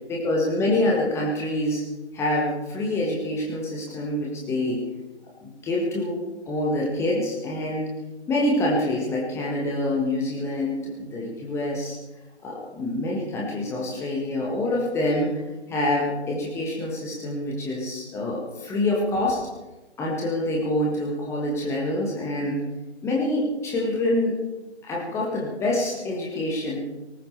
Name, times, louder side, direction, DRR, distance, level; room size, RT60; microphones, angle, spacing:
voice 1, 0.1-1.9 2.1-4.8 5.4-6.2 6.5-7.9 8.3-12.0 12.4-15.3 15.7-19.4 20.0-22.6 23.0-24.4 24.8-26.8, left 1 dB, 5° left, -2 dB, 1.4 m, -26 dB
19.0 x 18.5 x 3.3 m, 1.1 s
figure-of-eight pair, 140°, 35 cm